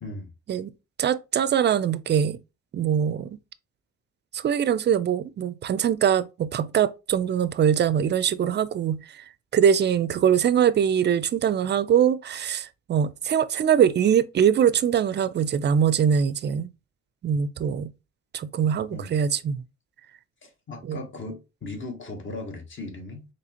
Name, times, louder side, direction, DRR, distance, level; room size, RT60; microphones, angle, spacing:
voice 1, 1.0-2.4 2.7-3.4 4.3-9.0 9.5-16.7 17.2-17.9 18.3-19.6 20.9-21.0, right 8 dB, 35° right, 0.4 m, -22 dB
voice 2, 20.4-23.2, left 2 dB, 40° left, 1.1 m, -37 dB
4.1 x 3.1 x 2.8 m
cardioid pair, 90°, 30 cm